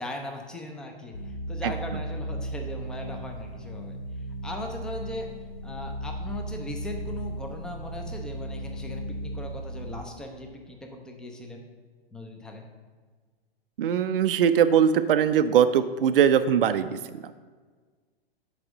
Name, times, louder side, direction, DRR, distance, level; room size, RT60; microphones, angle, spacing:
voice 1, 0.0-4.0 4.4-5.3 5.6-11.7 12.1-12.7, left 1 dB, ahead, 3 dB, 0.5 m, -39 dB
sound 1, 1.1-10.0, right 1 dB, 65° left, 0.7 m, -36 dB
voice 2, 13.8-17.2, right 8 dB, 65° right, 10 dB, 0.4 m, -21 dB
6.0 x 4.8 x 5.9 m, 1.5 s
figure-of-eight pair, 105°, 31 cm